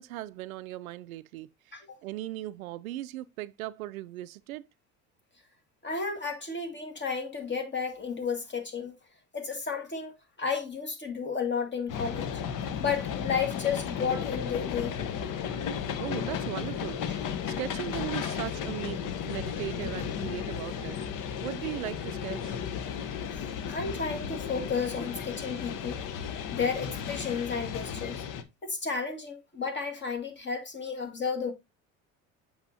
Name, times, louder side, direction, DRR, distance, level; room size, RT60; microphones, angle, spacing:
voice 1, 0.0-1.8 2.0-4.6 16.0-17.0 17.5-21.0 21.4-22.6, right 15 dB, 85° right, 0.5 m, -38 dB
voice 2, 5.8-9.0 9.3-10.1 10.4-12.4 12.8-15.0 23.7-26.0 26.5-28.2 28.6-31.5, left 5 dB, 25° left, 2.1 m, -32 dB
sound 1, 11.9-28.4, left 7 dB, 50° left, 1.0 m, -34 dB
7.8 x 5.7 x 2.7 m
hypercardioid pair, 70°, 41 cm